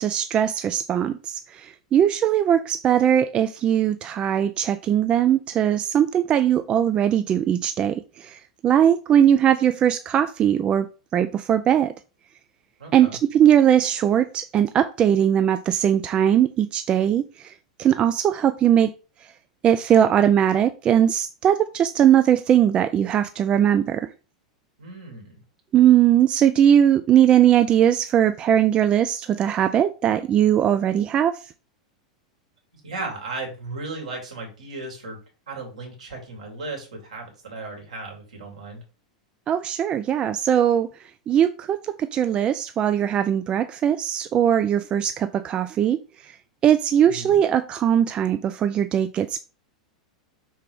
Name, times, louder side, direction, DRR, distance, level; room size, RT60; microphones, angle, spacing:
voice 1, 0.0-10.9 11.1-11.9 12.9-17.5 17.8-18.9 19.6-24.1 25.7-31.4 39.5-40.9 41.3-46.0 46.3-46.4 46.6-49.4, right 10 dB, 25° right, 0.4 m, -20 dB
voice 2, 12.8-13.2 24.8-25.4 32.8-35.2 35.5-38.8 47.0-47.3, right 3 dB, 70° right, 2.9 m, -35 dB
5.7 x 4.6 x 3.6 m
figure-of-eight pair, 90°, 4 cm